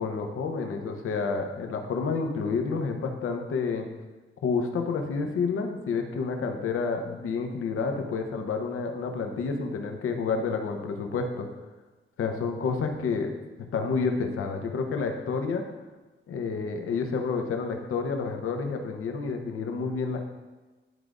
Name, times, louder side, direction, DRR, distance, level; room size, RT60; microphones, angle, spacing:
voice 1, 0.0-3.9 4.4-11.5 12.2-13.3 13.7-15.6 16.3-20.2, left 4 dB, 85° left, 4 dB, 0.8 m, -29 dB
11.0 x 4.7 x 2.5 m, 1.2 s
wide cardioid pair, 170°, 21 cm